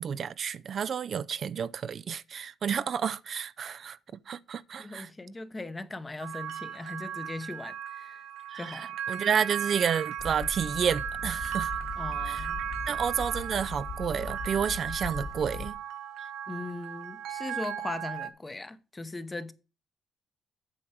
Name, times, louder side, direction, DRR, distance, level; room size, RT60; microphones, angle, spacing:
voice 1, 0.0-4.0 4.3-5.1 8.5-11.7 12.2-12.5 12.9-15.7, right 7 dB, 55° right, 0.4 m, -30 dB
voice 2, 4.8-8.2 8.5-8.9 12.0-12.6 12.9-13.0 16.5-19.5, left 2 dB, 20° left, 0.9 m, -39 dB
sound 1, 6.2-18.3, right 9 dB, 85° right, 0.7 m, -36 dB
sound 2, 10.2-15.7, left 5 dB, 45° left, 2.8 m, -39 dB
8.6 x 6.3 x 4.7 m
cardioid pair, 90°, 0 cm